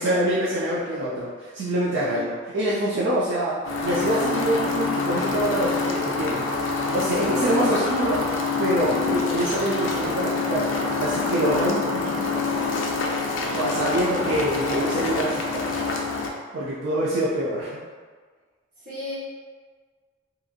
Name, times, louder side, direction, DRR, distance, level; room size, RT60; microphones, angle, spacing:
voice 1, 0.0-6.4 6.9-8.2 8.6-10.7 11.0-12.4 13.5-15.7 16.5-17.7, right 1 dB, 70° right, -7 dB, 0.4 m, -25 dB
voice 2, 1.9-2.3 7.3-7.9 18.8-19.1, left 3 dB, 35° right, -12 dB, 1.3 m, -35 dB
sound 1, 3.6-16.3, left 3 dB, 75° left, 0.4 m, -26 dB
2.7 x 2.6 x 2.4 m, 1.5 s
head